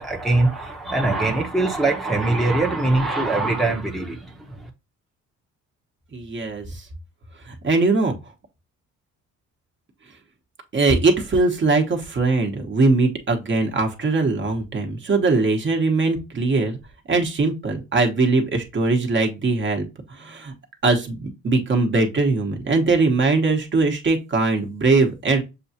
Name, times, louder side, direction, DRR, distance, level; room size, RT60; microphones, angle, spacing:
voice 1, 0.0-4.7, right 2 dB, ahead, 0.8 m, -22 dB
voice 2, 6.1-6.9 7.4-8.1 10.7-16.8 17.1-19.8 20.1-20.5 20.8-25.4, right 3 dB, 40° right, 1.0 m, -21 dB
6.7 x 2.4 x 2.7 m
cardioid pair, 90°, 30 cm